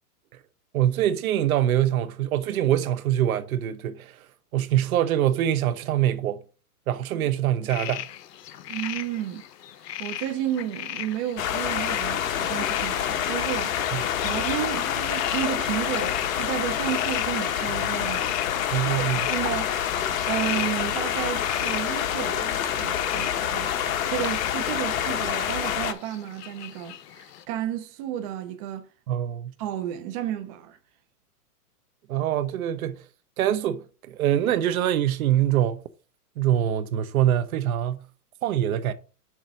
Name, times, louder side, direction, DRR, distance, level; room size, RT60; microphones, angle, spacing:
voice 1, 0.7-4.2 4.5-6.4 6.9-8.1 13.9-14.0 18.7-19.2 29.1-29.5 32.1-33.0 33.4-35.8 36.4-38.0 38.4-38.9, right 11 dB, 60° right, 0.9 m, -24 dB
sound 1, 7.7-27.4, left 11 dB, 80° left, 0.8 m, -37 dB
voice 2, 8.7-9.5 10.0-19.8 20.3-23.7 24.1-28.9 29.6-30.8, right 11 dB, 25° right, 0.5 m, -32 dB
sound 2, 11.4-25.9, left 9 dB, 60° left, 1.1 m, -27 dB
6.1 x 4.1 x 6.0 m
hypercardioid pair, 140°, 47 cm